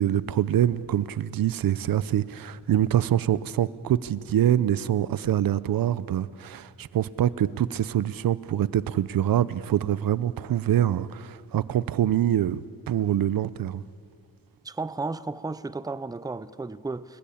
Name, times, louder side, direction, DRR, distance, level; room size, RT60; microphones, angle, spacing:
voice 1, 0.0-13.8, right 11 dB, 80° right, 0.7 m, -25 dB
voice 2, 14.6-17.2, right 3 dB, 10° right, 0.6 m, -33 dB
29.5 x 20.0 x 8.6 m
wide cardioid pair, 120°, 34 cm